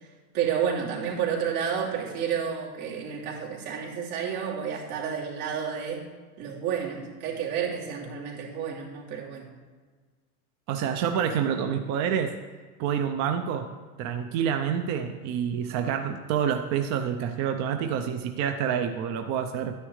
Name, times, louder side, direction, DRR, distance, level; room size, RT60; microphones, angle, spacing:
voice 1, 0.3-6.1 6.4-9.5, right 7 dB, 80° right, -3 dB, 2.9 m, -30 dB
voice 2, 10.7-12.3 12.8-13.7 14.0-19.7, right 8 dB, 40° right, 6 dB, 0.6 m, -27 dB
12.0 x 9.9 x 3.2 m, 1.4 s
supercardioid pair, 140°, 43 cm